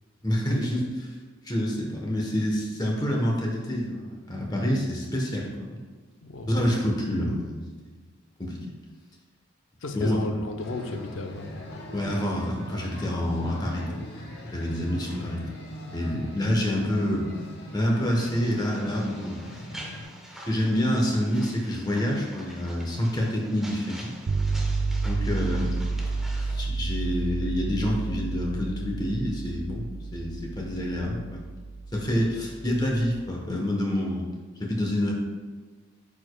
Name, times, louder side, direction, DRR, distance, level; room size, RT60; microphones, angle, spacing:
voice 1, 0.2-1.1 1.4-5.8 6.5-7.6 7.8-7.9 8.4-8.7 9.9-10.2 11.9-14.1 14.4-15.4 15.9-17.3 17.7-19.4 20.5-24.1 25.0-25.7 26.2-29.8 30.1-31.4 31.9-34.2 34.6-35.1, equal, 20° left, -1 dB, 1.0 m, -27 dB
voice 2, 6.2-6.5 9.8-11.5 14.8-15.4, left 2 dB, 70° left, 6 dB, 0.6 m, -34 dB
sound 1, 10.6-20.0, left 1 dB, 50° left, 0.9 m, -41 dB
sound 2, 18.2-26.7, right 1 dB, ahead, 0.6 m, -46 dB
sound 3, 24.3-33.2, right 3 dB, 45° right, 0.3 m, -30 dB
8.6 x 4.9 x 2.2 m, 1.4 s
head